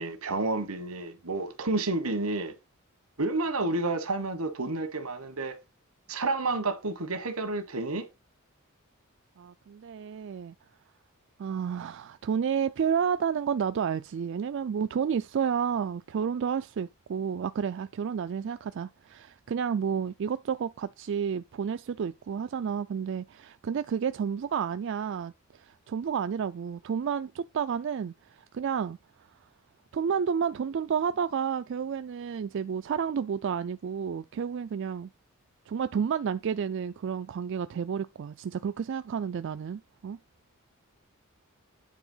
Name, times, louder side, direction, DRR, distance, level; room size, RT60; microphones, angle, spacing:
voice 1, 0.0-2.5 3.2-5.6 6.1-8.1, right 2 dB, 90° right, 1.5 m, -30 dB
voice 2, 9.4-10.5 11.4-28.1 28.5-29.0 29.9-35.1 35.7-40.2, right 7 dB, 60° right, 0.3 m, -31 dB
9.3 x 3.4 x 5.5 m
head